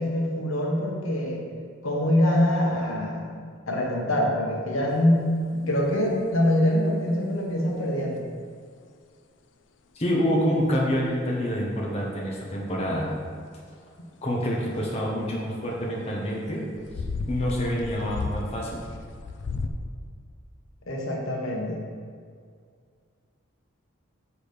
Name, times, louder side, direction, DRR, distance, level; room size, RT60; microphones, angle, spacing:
voice 1, 0.0-1.4 1.8-3.3 3.7-8.2 20.9-21.8, left 1 dB, 80° left, -1 dB, 1.2 m, -24 dB
sound 1, 5.0-5.1 5.8-6.0 6.5-6.6 8.1-8.2 10.3-10.4 10.8-11.1 13.0-13.1 14.7-14.8 16.8-19.7, left 3 dB, 60° left, 0.4 m, -34 dB
voice 2, 9.9-13.1 14.2-16.6 17.3-18.8, equal, 30° left, -3 dB, 1.1 m, -27 dB
6.7 x 4.9 x 5.1 m, 2.1 s
head